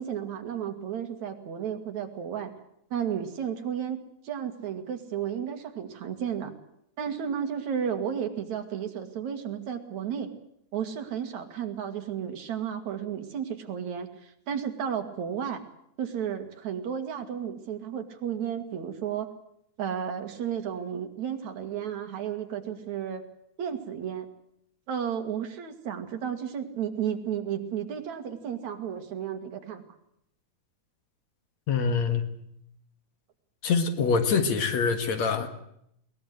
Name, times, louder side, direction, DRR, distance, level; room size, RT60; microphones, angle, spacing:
voice 1, 0.0-2.5 2.9-4.0 4.2-6.5 7.0-10.3 10.7-15.6 16.0-19.3 19.8-23.2 23.6-24.3 24.9-29.8, right 8 dB, 70° right, 6 dB, 3.3 m, -33 dB
voice 2, 31.7-32.2 33.6-35.5, left 5 dB, 65° left, 8 dB, 3.0 m, -25 dB
21.5 x 19.5 x 7.9 m, 0.73 s
omnidirectional pair, 3.5 m